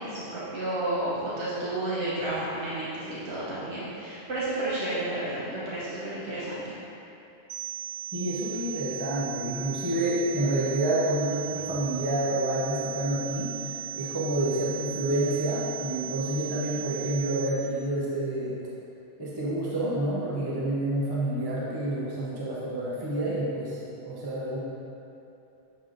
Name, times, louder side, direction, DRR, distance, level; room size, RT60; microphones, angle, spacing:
voice 1, 0.0-6.8, right 1 dB, 85° right, -9 dB, 1.3 m, -31 dB
sound 1, 7.5-17.5, right 12 dB, 70° right, 0.8 m, -37 dB
voice 2, 8.1-18.6 19.2-24.6, right 1 dB, 25° right, -7 dB, 0.8 m, -28 dB
9.9 x 3.4 x 3.9 m, 2.9 s
omnidirectional pair, 1.1 m